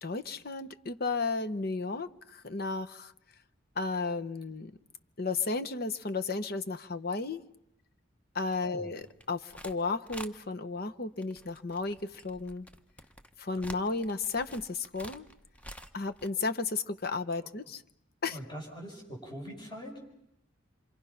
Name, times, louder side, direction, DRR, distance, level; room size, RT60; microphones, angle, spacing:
voice 1, 0.0-3.1 3.8-4.7 5.2-7.4 8.3-12.7 13.4-15.3 15.9-17.8 18.2-18.4, left 3 dB, 55° left, 9 dB, 1.0 m, -33 dB
voice 2, 8.6-8.9 18.3-20.0, equal, 25° left, 0 dB, 6.4 m, -43 dB
sound 1, 9.0-9.8 10.1-10.3 11.2-16.3, equal, 5° left, 0.9 m, -48 dB
27.5 x 25.0 x 5.8 m, 0.80 s
head